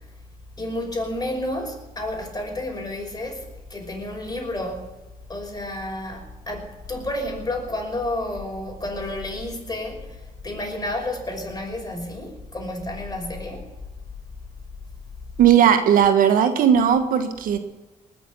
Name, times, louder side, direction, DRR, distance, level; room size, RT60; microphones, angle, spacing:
voice 1, 0.6-3.4 3.7-4.9 5.3-13.7, left 1 dB, 25° left, 2 dB, 5.6 m, -30 dB
voice 2, 15.4-17.6, right 9 dB, 80° right, 8 dB, 1.6 m, -17 dB
20.0 x 7.0 x 10.0 m, 1.1 s
cardioid pair, 70°, 14 cm